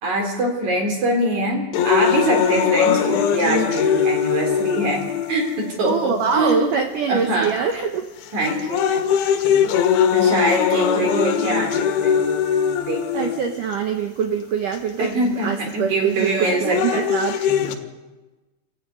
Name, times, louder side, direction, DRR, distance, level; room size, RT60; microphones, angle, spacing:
voice 1, 0.0-5.0 5.3-6.7 7.1-7.5 8.3-9.1 10.1-12.2 12.8-13.3 15.0-17.0 17.6-17.7, right 1 dB, 40° right, 2 dB, 4.8 m, -23 dB
sound 1, 1.7-5.8 6.5-6.6 7.4-7.7 8.2-13.7 14.7-14.8 16.2-17.7, left 8 dB, 80° left, 3.8 m, -21 dB
voice 2, 5.8-8.1 13.1-17.4, right 6 dB, 85° right, 5 dB, 1.8 m, -24 dB
25.5 x 14.5 x 9.5 m, 1.1 s
omnidirectional pair, 5.4 m